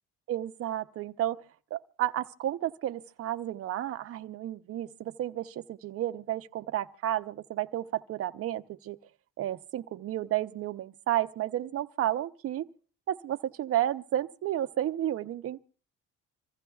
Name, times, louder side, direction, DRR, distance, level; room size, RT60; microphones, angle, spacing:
voice 1, 0.3-1.4 1.7-9.0 9.4-12.7 13.1-15.6, right 12 dB, 45° right, 0.6 m, -32 dB
26.5 x 15.0 x 2.3 m
cardioid pair, 145°, 32 cm